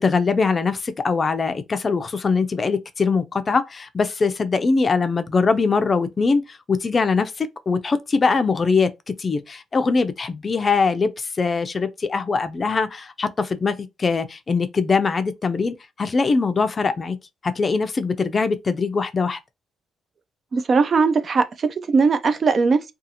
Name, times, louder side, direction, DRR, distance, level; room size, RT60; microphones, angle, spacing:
voice 1, 0.0-8.9 9.2-17.2 17.4-19.4, left 4 dB, 35° left, 0.4 m, -22 dB
voice 2, 20.5-22.9, right 4 dB, 45° right, 0.3 m, -19 dB
2.5 x 2.4 x 2.8 m
cardioid pair, 90°, 0 cm